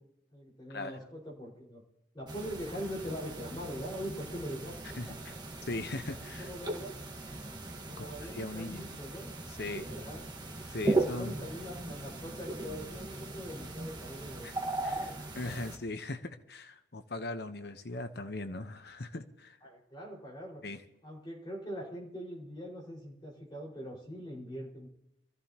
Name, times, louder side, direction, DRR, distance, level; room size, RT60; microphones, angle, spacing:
voice 1, 0.3-1.8 2.1-4.8 6.4-6.9 7.9-9.3 9.8-10.2 10.8-15.2 19.6-20.6 21.0-24.9, equal, 25° left, -4 dB, 5.1 m, -42 dB
Frozen lake freezing again, 2.3-15.8, right 2 dB, 25° right, 1.6 m, -38 dB
voice 2, 5.0-5.3 5.7-6.5 8.0-8.8 9.5-9.9 10.7-11.4 14.4-14.5 14.8-19.6 20.6-20.8, left 2 dB, 60° left, 9 dB, 0.9 m, -39 dB
25.0 x 14.5 x 2.9 m, 0.81 s
head